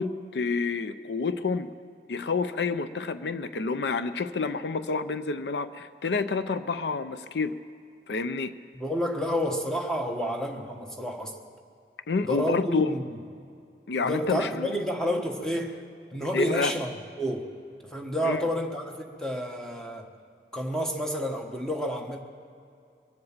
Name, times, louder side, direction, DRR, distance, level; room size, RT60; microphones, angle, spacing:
voice 1, 0.0-1.7 2.1-7.6 8.1-8.5 12.1-12.9 13.9-14.8 16.3-16.7 18.2-18.4, left 4 dB, 75° left, 12 dB, 0.5 m, -28 dB
voice 2, 8.7-11.4 12.2-13.2 14.0-15.7 16.1-17.5 17.8-20.1 20.5-22.2, equal, 5° left, 2 dB, 1.2 m, -30 dB
23.5 x 7.9 x 7.2 m, 2.5 s
head